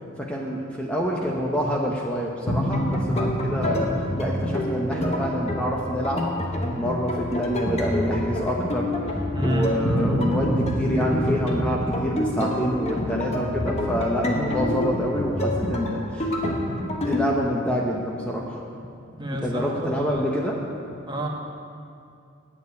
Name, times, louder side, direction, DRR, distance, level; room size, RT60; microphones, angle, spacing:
voice 1, 0.2-3.9 4.2-6.3 6.7-8.9 9.4-16.3 17.0-18.6 19.4-20.6, equal, 5° left, -2 dB, 0.8 m, -27 dB
sound 1, 2.5-17.2, left 1 dB, 35° left, 1.2 m, -26 dB
voice 2, 9.3-9.8 19.2-20.2 21.1-21.3, equal, 25° right, -1 dB, 1.4 m, -29 dB
9.3 x 7.1 x 8.4 m, 2.4 s
head